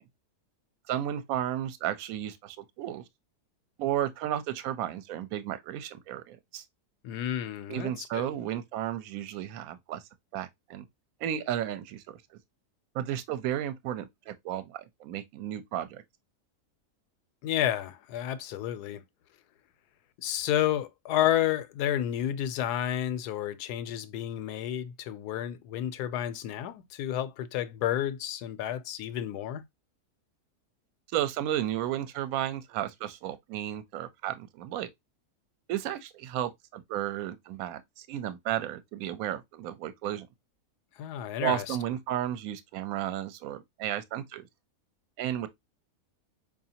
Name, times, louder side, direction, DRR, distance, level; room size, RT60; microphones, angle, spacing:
voice 1, 0.9-3.0 3.8-6.6 7.7-10.0 10.3-10.8 11.2-12.2 12.9-16.0 31.1-34.9 35.7-40.3 41.4-44.5 45.2-45.5, right 11 dB, 70° right, 1.0 m, -33 dB
voice 2, 7.0-8.3 17.4-19.0 20.2-29.6 41.0-41.8, left 11 dB, 85° left, 1.1 m, -31 dB
4.8 x 2.7 x 2.7 m
omnidirectional pair, 1.6 m